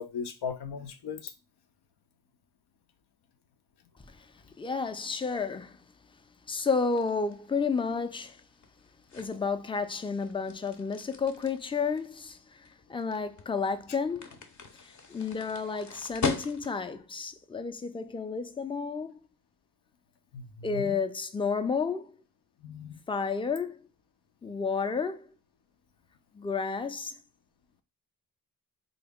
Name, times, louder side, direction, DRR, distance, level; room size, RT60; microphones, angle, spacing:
voice 1, 0.0-1.3 20.3-21.0 22.6-23.0, left 6 dB, 90° left, 0.6 m, -37 dB
voice 2, 4.6-5.9 6.5-8.4 9.1-14.3 14.7-19.2 20.6-22.1 23.1-23.8 24.4-25.3 26.3-27.2, left 5 dB, 15° left, 0.3 m, -31 dB
sound 1, 6.6-17.0, left 4 dB, 50° left, 0.6 m, -40 dB
3.8 x 2.1 x 3.5 m
cardioid pair, 60°, 38 cm